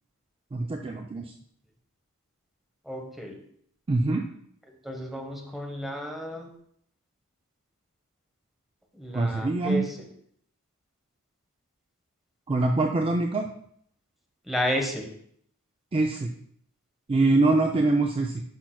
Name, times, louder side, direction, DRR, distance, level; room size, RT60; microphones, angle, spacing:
voice 1, 0.5-1.2 3.9-4.2 9.1-9.8 12.5-13.5 15.9-16.3 17.1-18.4, right 2 dB, 25° right, 3 dB, 0.4 m, -24 dB
voice 2, 2.8-3.4 4.7-6.5 8.9-9.9 14.4-15.1, equal, ahead, 2 dB, 1.0 m, -32 dB
10.0 x 6.0 x 2.3 m, 0.66 s
head